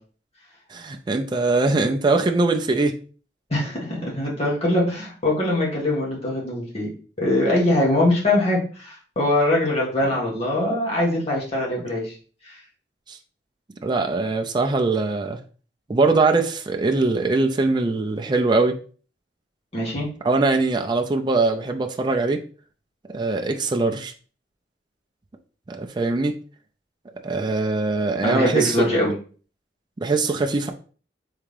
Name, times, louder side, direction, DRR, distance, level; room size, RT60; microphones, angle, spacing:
voice 1, 0.7-3.0 11.8-11.9 13.1-13.2 13.8-15.4 15.9-18.8 20.2-22.4 23.1-24.1 25.7-26.3 27.2-28.9 30.0-30.7, right 3 dB, 25° right, 4 dB, 0.4 m, -22 dB
voice 2, 3.5-6.9 7.2-12.2 12.4-12.6 19.7-20.1 28.2-29.1, left 1 dB, 35° left, -5 dB, 1.6 m, -22 dB
3.7 x 3.4 x 3.2 m, 0.39 s
head